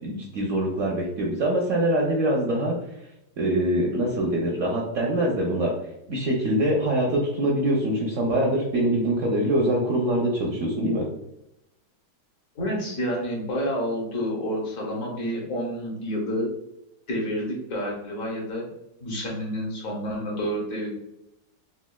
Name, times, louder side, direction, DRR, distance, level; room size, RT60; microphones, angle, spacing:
voice 1, 0.0-2.8 3.4-5.8 6.1-11.0, right 1 dB, 70° right, -2 dB, 0.7 m, -24 dB
voice 2, 12.6-16.5 17.1-18.7 19.0-20.9, equal, 60° left, -1 dB, 1.1 m, -29 dB
4.0 x 2.3 x 2.2 m, 0.85 s
omnidirectional pair, 1.8 m